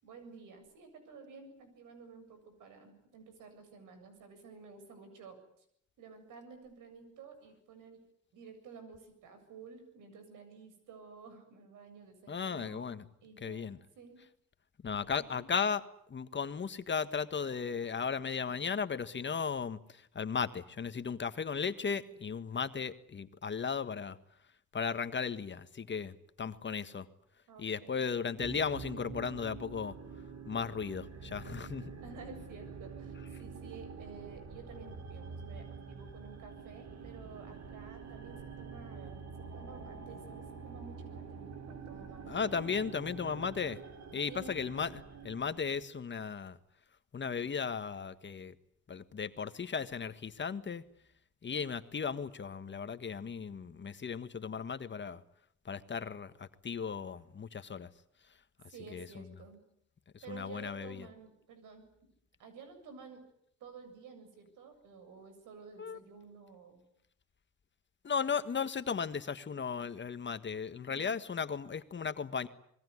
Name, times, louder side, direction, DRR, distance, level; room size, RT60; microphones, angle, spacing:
voice 1, 0.0-5.6 6.0-8.0 8.3-14.2 15.1-15.5 27.5-28.1 32.0-42.6 43.1-43.3 44.3-44.6 58.7-59.6 60.2-61.9 62.4-63.2 63.6-66.8 70.8-71.1, right 5 dB, 85° right, 7.7 m, -52 dB
voice 2, 12.3-13.0 13.4-13.8 14.8-15.8 16.1-24.2 24.7-27.1 27.6-29.9 30.5-31.9 42.3-43.8 44.1-46.6 47.1-48.6 48.9-50.8 51.4-55.2 55.6-57.9 58.9-59.2 60.3-61.1 65.8-66.0 68.0-72.5, left 6 dB, 40° left, 1.7 m, -36 dB
sound 1, 28.4-45.8, right 5 dB, 60° right, 4.3 m, -46 dB
26.5 x 21.5 x 9.7 m
cardioid pair, 90°, 30 cm